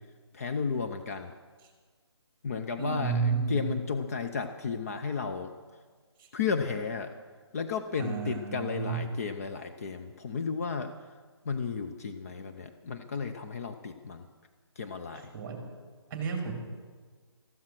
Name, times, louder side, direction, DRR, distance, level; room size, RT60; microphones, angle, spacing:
voice 1, 0.3-1.3 2.4-5.5 6.3-7.1 7.5-10.9 11.5-14.3 14.8-15.3, left 5 dB, 35° left, 6 dB, 0.7 m, -33 dB
voice 2, 2.8-3.7 8.0-9.0 15.1-15.6 16.1-16.5, right 5 dB, 15° right, 3 dB, 2.7 m, -31 dB
14.0 x 14.0 x 6.0 m, 1.5 s
hypercardioid pair, 165°, 14 cm